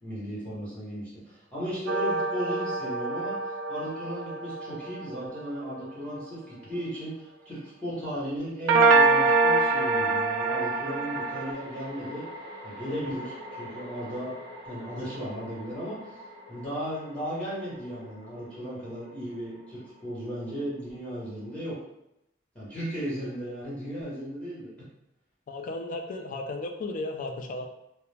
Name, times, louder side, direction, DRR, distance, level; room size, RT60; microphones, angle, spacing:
voice 1, 0.0-12.2 12.6-14.4 14.6-16.2 16.5-21.8 22.5-24.7, equal, 5° left, -9 dB, 1.0 m, -36 dB
sound 1, 1.9-5.4 8.7-11.5, right 3 dB, 80° right, 0.3 m, -24 dB
sound 2, 7.5-7.6 10.4-21.8, left 1 dB, 25° right, 0.7 m, -46 dB
voice 2, 25.5-27.7, left 2 dB, 40° left, 3 dB, 0.3 m, -34 dB
2.4 x 2.1 x 3.2 m, 0.84 s
head